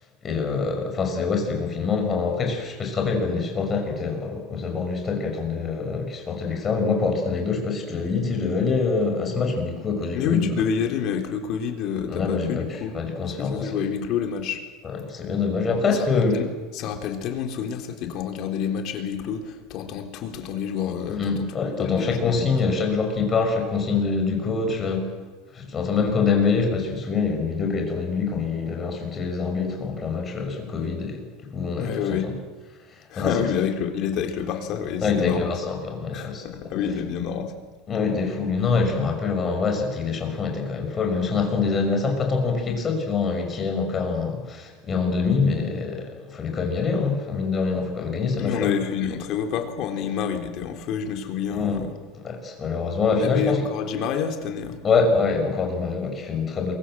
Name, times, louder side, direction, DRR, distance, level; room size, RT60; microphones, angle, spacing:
voice 1, 0.2-10.5 12.1-13.8 14.8-16.5 21.1-25.1 25.5-32.3 32.9-33.6 35.0-36.7 37.9-48.7 51.5-51.8 52.1-53.7 54.8-56.7, left 4 dB, 20° left, 4 dB, 5.9 m, -25 dB
voice 2, 10.1-12.9 13.4-14.6 16.1-16.5 16.7-21.5 21.8-22.5 31.8-32.3 33.1-35.5 36.1-37.5 48.4-51.9 53.1-54.8, left 7 dB, 40° left, 4 dB, 3.9 m, -28 dB
28.0 x 23.5 x 7.7 m, 1.3 s
supercardioid pair, 160°, 0 cm